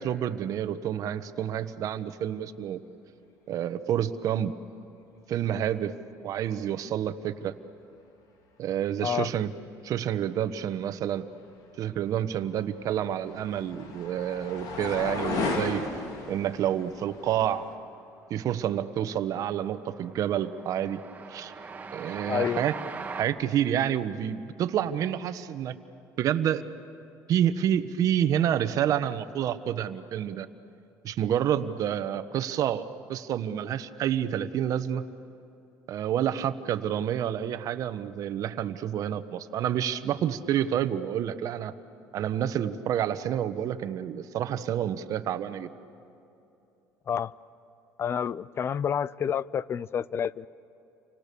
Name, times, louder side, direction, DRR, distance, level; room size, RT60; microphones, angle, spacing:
voice 1, 0.0-2.8 3.5-4.5 5.3-5.9 6.2-7.5 8.6-9.5 9.8-11.3 11.8-15.8 16.3-17.7 18.3-21.0 21.3-21.5 21.9-22.8 23.2-25.7 26.2-26.6 27.3-30.5 31.0-32.8 33.1-35.0 35.9-41.7 42.1-45.7, right 10 dB, 55° right, 11 dB, 1.2 m, -28 dB
sound 1, 12.5-17.8, left 3 dB, 70° left, 3.6 m, -35 dB
Train, 17.6-18.0 18.3-23.2, right 4 dB, 25° right, 1.7 m, -41 dB
voice 2, 22.3-22.6 47.1-47.3 48.0-50.5, left 8 dB, 40° left, 21 dB, 0.5 m, -29 dB
30.0 x 25.5 x 6.9 m, 2.8 s
cardioid pair, 110°, 7 cm